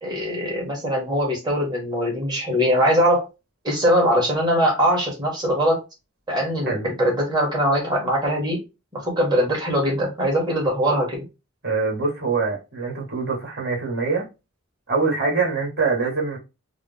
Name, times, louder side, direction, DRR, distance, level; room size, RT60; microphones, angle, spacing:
voice 1, 0.0-3.3 3.6-5.8 6.3-8.6 8.9-11.2, equal, 20° right, 1.6 m, -21 dB
voice 2, 11.6-14.3 14.9-16.4, right 4 dB, 50° right, 2.0 m, -24 dB
4.8 x 2.1 x 3.5 m
head